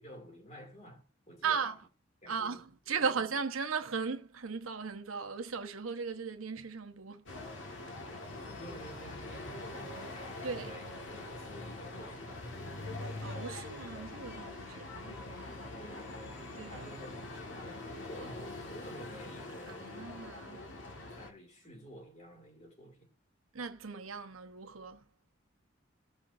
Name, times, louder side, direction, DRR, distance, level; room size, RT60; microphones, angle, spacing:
voice 1, 0.0-1.7 2.2-3.2 8.6-13.1 15.3-17.2 17.6-20.7 21.1-23.1, equal, 35° left, 2.5 m, -51 dB
voice 2, 1.4-1.8 2.3-7.3 10.4-10.7 13.2-15.2 16.5-16.9 19.7-20.6 23.5-25.1, right 5 dB, 90° right, 0.9 m, -37 dB
sound 1, 7.3-21.3, left 2 dB, 70° left, 1.6 m, -44 dB
15.5 x 5.5 x 2.6 m
head